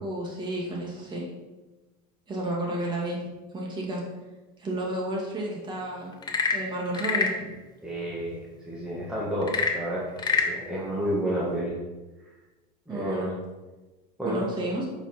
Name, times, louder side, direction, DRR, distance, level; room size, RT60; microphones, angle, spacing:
voice 1, 0.0-1.3 2.3-3.2 3.5-4.0 4.6-6.1 6.5-7.3 12.9-13.3 14.2-14.9, right 1 dB, 20° right, -2 dB, 2.1 m, -31 dB
Frog / Percussion / Wood, 6.1-7.4 9.4-10.6, left 5 dB, 20° left, 0.8 m, -26 dB
voice 2, 7.8-8.4 8.6-10.1 10.5-11.7 12.9-13.3 14.2-14.4, right 1 dB, 5° right, -7 dB, 1.6 m, -30 dB
8.4 x 5.3 x 4.4 m, 1.2 s
supercardioid pair, 135°, 21 cm